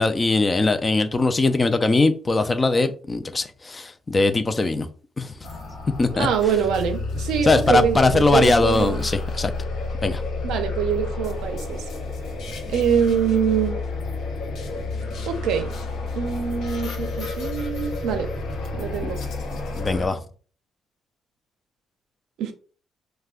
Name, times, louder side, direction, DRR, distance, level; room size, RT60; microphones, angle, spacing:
voice 1, 0.0-4.9 5.2-5.3 6.0-6.3 7.4-9.5 10.0-10.2 19.8-20.2, left 3 dB, 25° left, 0.3 m, -20 dB
sound 1, 5.4-20.1, left 3 dB, 80° left, 0.8 m, -30 dB
voice 2, 6.1-9.0 10.4-11.9 12.7-13.8 15.3-15.7 16.1-18.3 18.7-19.2 22.4-22.5, right 7 dB, 85° right, 0.5 m, -24 dB
2.4 x 2.1 x 3.5 m
cardioid pair, 90°, 0 cm